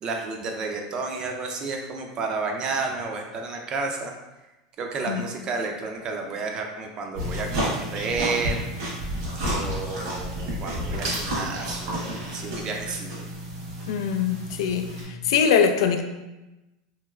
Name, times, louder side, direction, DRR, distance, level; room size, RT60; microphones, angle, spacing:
voice 1, 0.0-4.1 4.8-8.6 9.5-13.2, right 4 dB, 30° right, 2 dB, 0.4 m, -31 dB
sound 1, 7.2-15.0, equal, 80° right, 1.3 m, -30 dB
voice 2, 13.9-14.9 15.2-16.0, left 7 dB, 80° left, 7 dB, 0.3 m, -22 dB
3.1 x 2.9 x 2.3 m, 1.0 s
supercardioid pair, 150°, 3 cm